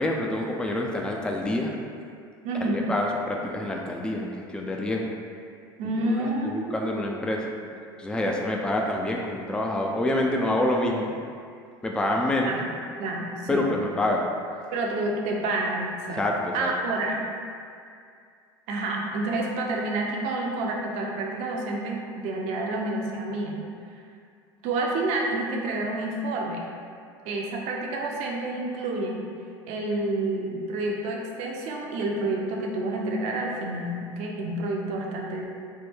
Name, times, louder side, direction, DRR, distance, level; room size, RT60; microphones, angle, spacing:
voice 1, 0.0-1.7 2.5-5.1 6.0-7.5 8.0-11.1 11.8-12.6 13.5-14.3 16.2-16.7, left 1 dB, 5° left, 0 dB, 0.3 m, -27 dB
voice 2, 2.4-2.9 5.8-7.0 12.4-12.6 13.0-13.8 14.7-16.2 16.5-17.2 18.7-23.6 24.6-26.6 27.3-29.3 29.7-35.5, right 2 dB, 65° right, -1 dB, 0.6 m, -29 dB
3.2 x 2.1 x 3.4 m, 2.3 s
hypercardioid pair, 80°, 12 cm